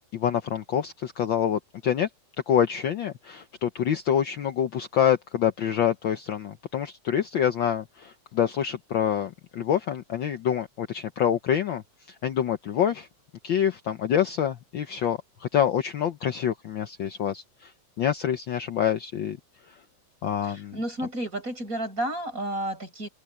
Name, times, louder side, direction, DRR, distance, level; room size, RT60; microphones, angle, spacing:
voice 1, 0.1-2.1 2.5-11.8 12.2-13.1 13.4-17.7 18.0-19.4 20.2-20.8, left 9 dB, 75° left, 1.0 m, -26 dB
voice 2, 20.4-23.1, right 1 dB, 25° right, 8.6 m, -31 dB
open air
omnidirectional pair, 3.5 m